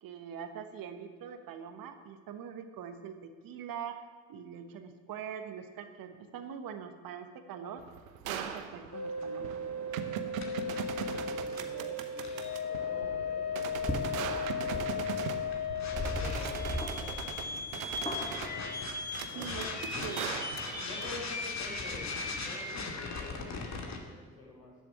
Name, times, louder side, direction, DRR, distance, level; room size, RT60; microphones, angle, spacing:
voice 1, 0.0-7.8 8.3-9.6 19.3-19.6 20.0-20.4, right 7 dB, 55° right, 8 dB, 1.5 m, -43 dB
sound 1, 7.8-21.1, right 7 dB, 80° right, 1.0 m, -40 dB
sound 2, 8.9-24.0, left 4 dB, 45° left, 2.3 m, -36 dB
voice 2, 10.0-15.3 15.9-17.5 19.2-19.7 19.9-20.0 20.7-24.8, left 2 dB, 65° left, -2 dB, 5.1 m, -48 dB
sound 3, 13.7-19.0, left 1 dB, 15° left, 2.3 m, -39 dB
14.0 x 7.7 x 9.7 m, 1.5 s
figure-of-eight pair, 45°, 40 cm